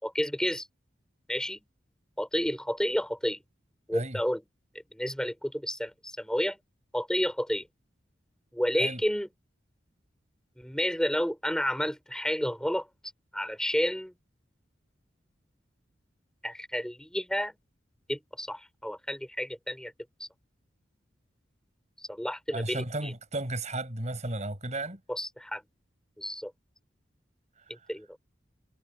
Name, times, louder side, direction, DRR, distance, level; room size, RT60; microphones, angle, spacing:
voice 1, 0.0-0.7 1.3-1.6 2.2-3.4 3.9-4.4 4.9-6.6 6.9-7.7 8.5-9.3 10.6-12.9 13.3-14.1 16.4-17.5 18.1-19.9 20.2-20.3 22.0-23.1 25.1-25.6 26.2-26.5 27.9-28.1, equal, 5° left, 4.0 m, -30 dB
voice 2, 22.5-25.0 27.6-27.7, right 2 dB, 40° right, 5.4 m, -34 dB
head